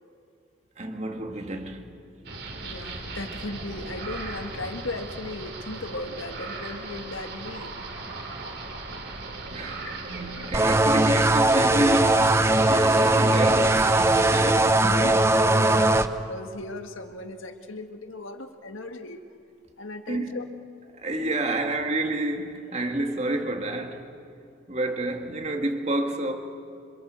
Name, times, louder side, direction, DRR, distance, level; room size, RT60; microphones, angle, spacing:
voice 1, 0.8-1.9 9.0-15.9 20.1-20.4 21.0-24.1 24.7-26.3, right 1 dB, 35° right, 2.1 m, -30 dB
sound 1, 2.2-14.4, right 3 dB, 55° right, 3.6 m, -37 dB
voice 2, 2.6-7.7 9.8-9.9 14.8-15.1 15.4-19.2 19.8-20.5, left 2 dB, 80° left, 1.8 m, -37 dB
sound 2, 10.5-16.1, right 2 dB, 15° right, 0.7 m, -20 dB
27.0 x 26.0 x 8.2 m
head